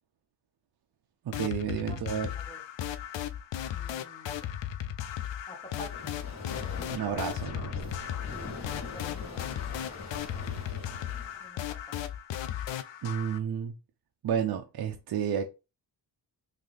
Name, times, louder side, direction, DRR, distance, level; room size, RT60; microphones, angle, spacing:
sound 1, 1.3-13.4, left 10 dB, 75° left, 0.5 m, -36 dB
voice 1, 1.3-2.3 6.9-7.8 13.0-13.7 14.2-15.4, right 8 dB, 55° right, 0.6 m, -31 dB
voice 2, 1.9-2.6 3.7-4.5 5.5-6.1 8.3-10.6 11.4-12.0, equal, 10° left, 0.9 m, -50 dB
sound 2, 5.7-11.4, left 3 dB, 35° left, 1.1 m, -42 dB
3.8 x 2.8 x 3.3 m
wide cardioid pair, 145°, 46 cm